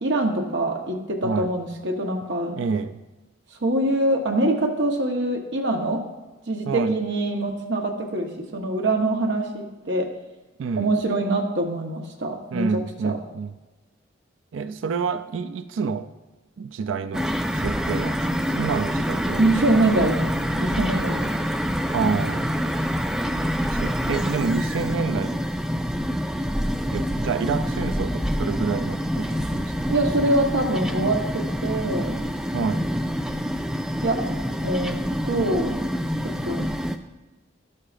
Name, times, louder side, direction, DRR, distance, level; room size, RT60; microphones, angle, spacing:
voice 1, 0.0-2.6 3.6-6.0 6.5-10.1 10.8-13.1 19.4-20.2 20.4-21.3 29.9-32.2 34.0-35.0 35.2-35.8 36.2-36.7, right 1 dB, 65° right, 1.1 m, -24 dB
voice 2, 2.6-3.0 6.7-7.0 10.6-10.9 12.5-13.5 14.5-16.1 16.6-19.4 21.9-22.5 23.7-25.4 26.9-29.6 32.5-32.9, right 5 dB, 80° right, 0.4 m, -28 dB
sound 1, 17.1-37.0, equal, 5° right, 0.3 m, -26 dB
12.0 x 6.6 x 2.5 m
head